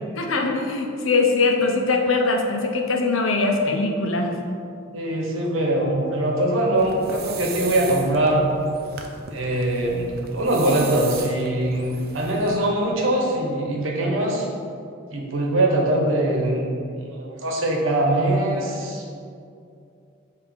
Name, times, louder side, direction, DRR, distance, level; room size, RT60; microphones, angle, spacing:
voice 1, 0.2-4.3, left 3 dB, 85° left, 3 dB, 0.7 m, -21 dB
voice 2, 4.9-8.4 9.3-14.5 15.1-16.7 17.0-19.2, right 1 dB, 85° right, -1 dB, 1.0 m, -22 dB
sound 1, 6.8-12.6, right 5 dB, 50° right, 0.6 m, -37 dB
7.2 x 2.8 x 5.0 m, 2.4 s
head